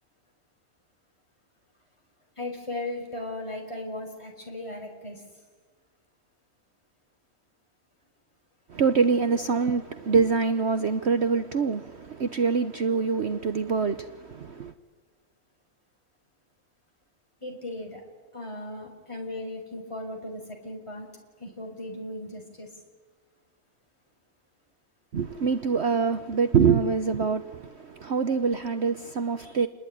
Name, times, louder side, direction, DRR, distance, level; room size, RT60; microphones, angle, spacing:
voice 1, 2.4-5.2 17.4-18.0 18.3-21.1 21.4-22.7, left 1 dB, 20° left, 1 dB, 5.2 m, -37 dB
voice 2, 8.7-14.7 25.1-29.7, right 5 dB, 50° right, 10 dB, 1.2 m, -25 dB
28.5 x 21.0 x 10.0 m, 1.4 s
omnidirectional pair, 1.5 m